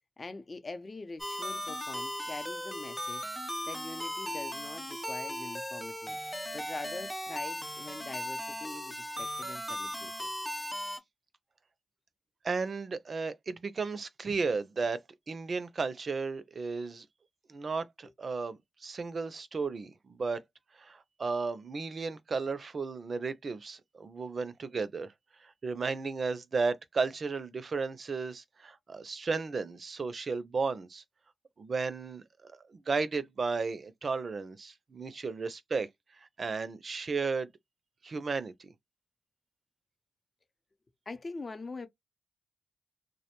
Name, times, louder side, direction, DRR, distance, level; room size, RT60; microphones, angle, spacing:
voice 1, 0.2-3.3 3.7-6.2 6.5-10.1 41.1-41.9, left 3 dB, 45° left, 0.6 m, -43 dB
sound 1, 1.2-11.0, left 1 dB, 5° left, 0.7 m, -37 dB
voice 2, 12.4-15.0 15.3-17.1 17.5-20.4 20.7-25.1 25.4-31.0 31.6-32.2 32.5-35.9 36.2-37.5 38.0-38.7, right 4 dB, 60° right, 0.4 m, -34 dB
2.2 x 2.1 x 2.9 m
cardioid pair, 50°, 0 cm